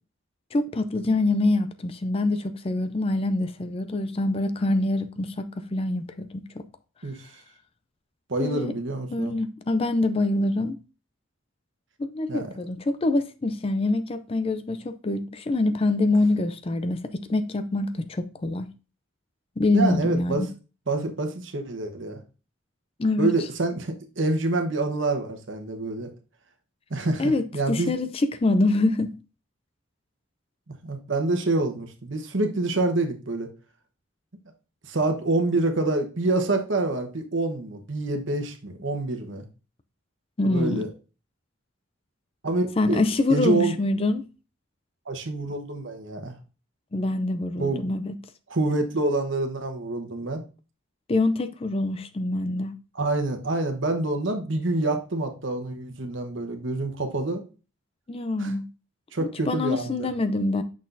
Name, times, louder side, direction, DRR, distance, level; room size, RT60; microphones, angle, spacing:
voice 1, 0.5-6.6 8.4-8.7 9.1-10.8 12.0-18.7 19.6-20.5 23.0-23.3 27.2-29.1 40.4-40.9 42.8-44.3 46.9-48.1 51.1-52.8 58.1-58.6 59.2-60.6, left 2 dB, 30° left, 0.4 m, -25 dB
voice 2, 8.3-9.3 12.3-12.5 19.7-20.5 20.9-22.2 23.2-26.1 26.9-27.9 30.7-33.5 34.9-39.4 40.4-40.9 42.4-43.0 43.3-43.8 45.1-46.3 47.6-47.8 48.5-50.4 52.9-57.4 58.4-58.5 59.1-60.1, right 2 dB, 70° right, 1.1 m, -27 dB
6.3 x 6.0 x 2.6 m
head